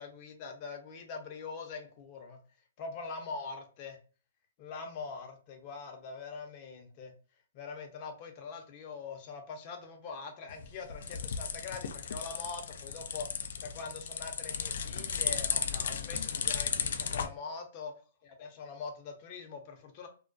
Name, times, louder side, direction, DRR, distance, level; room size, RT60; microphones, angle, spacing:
voice 1, 0.0-2.4 2.8-4.0 4.6-7.1 7.5-17.9 18.2-20.1, left 4 dB, 40° left, 4 dB, 0.6 m, -43 dB
sound 1, 10.5-17.3, left 7 dB, 70° left, 0.3 m, -35 dB
2.3 x 2.1 x 2.5 m, 0.38 s
hypercardioid pair, 130°, 0 cm